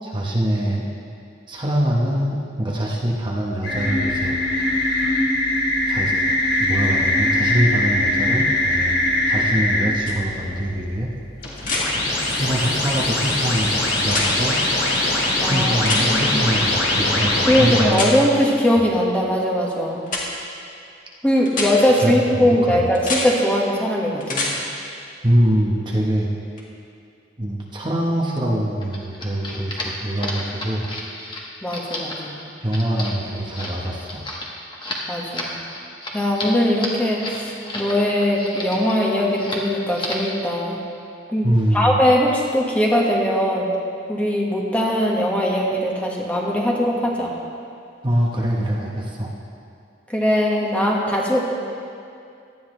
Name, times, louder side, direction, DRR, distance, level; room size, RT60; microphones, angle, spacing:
voice 1, 0.0-0.9 1.5-4.4 5.9-6.2 6.6-9.0 9.3-11.1 12.3-14.6 15.5-18.2 22.0-22.8 25.2-26.3 27.4-30.9 32.6-34.2 41.4-42.0 48.0-49.3, right 1 dB, 25° right, -3 dB, 1.1 m, -23 dB
sound 1, 3.6-9.8 11.4-17.8, left 1 dB, 70° left, 3.0 m, -21 dB
sound 2, 10.1-10.2 11.6-11.9 14.0-14.3 15.8-16.1 17.9-18.1 20.1-20.2 21.5-21.7 22.9-23.2 24.2-24.5 26.6-26.7, left 3 dB, 45° left, 2.0 m, -25 dB
voice 2, 17.5-20.0 21.2-24.5 31.6-32.4 35.1-35.5 36.1-40.8 41.3-41.5 41.7-43.7 44.1-47.3 50.1-51.4, equal, 10° left, -3 dB, 1.5 m, -20 dB
sound 3, 28.8-37.9 38.2-39.0 39.3-39.7 39.9-40.3, left 1 dB, 25° left, 1.5 m, -32 dB
18.0 x 12.5 x 3.2 m, 2.5 s
head